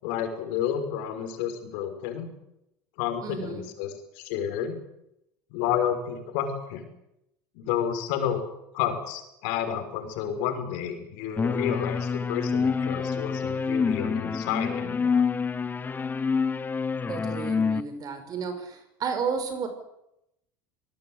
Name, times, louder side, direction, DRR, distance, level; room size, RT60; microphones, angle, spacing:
voice 1, 0.0-2.3 3.0-4.8 5.5-6.9 7.5-8.4 8.7-15.2, left 9 dB, 75° left, 7 dB, 6.0 m, -30 dB
voice 2, 3.2-3.6 17.1-19.7, right 6 dB, 40° right, 8 dB, 5.6 m, -32 dB
sound 1, 11.4-17.8, left 5 dB, 20° left, 1.2 m, -27 dB
26.0 x 19.0 x 8.2 m, 0.83 s
supercardioid pair, 105°, 10 cm